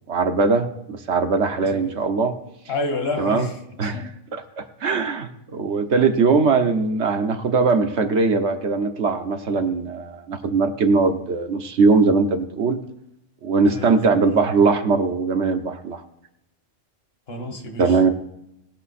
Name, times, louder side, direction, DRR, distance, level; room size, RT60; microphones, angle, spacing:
voice 1, 0.1-2.3 3.2-3.5 3.8-4.0 4.3-12.8 13.4-16.0 17.8-18.1, right 4 dB, 70° right, 7 dB, 1.3 m, -20 dB
voice 2, 1.6-1.9 2.7-4.1 4.5-4.7 13.6-14.2 17.3-18.0, left 2 dB, 55° left, 5 dB, 1.8 m, -30 dB
19.0 x 6.8 x 4.2 m, 0.82 s
omnidirectional pair, 1.2 m